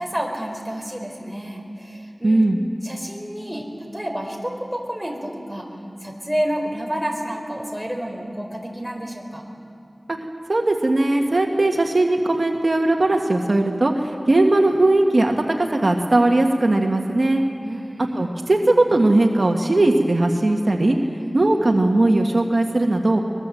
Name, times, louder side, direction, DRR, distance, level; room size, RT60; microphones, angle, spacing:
voice 1, 0.0-2.5 2.8-5.7 6.0-9.4 17.6-18.4 21.2-21.6, equal, 5° right, 1 dB, 4.3 m, -30 dB
voice 2, 2.2-2.6 10.1-10.2 10.5-17.4 18.1-21.0 21.3-23.2, right 2 dB, 65° right, 2 dB, 1.6 m, -18 dB
23.5 x 21.0 x 7.7 m, 2.6 s
wide cardioid pair, 45°, 0 cm